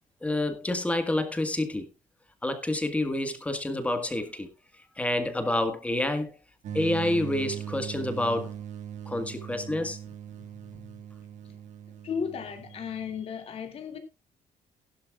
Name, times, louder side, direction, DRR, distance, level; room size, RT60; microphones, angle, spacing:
voice 1, 0.2-1.9 2.4-4.5 5.0-6.3 6.7-8.5 9.1-10.0, left 1 dB, 10° left, 1.6 m, -28 dB
sound 1, 6.6-13.2, right 9 dB, 60° right, 1.8 m, -40 dB
voice 2, 10.1-11.0 11.4-11.6 12.0-14.0, left 6 dB, 45° left, 2.4 m, -36 dB
16.0 x 11.5 x 2.4 m
cardioid pair, 165°, 14 cm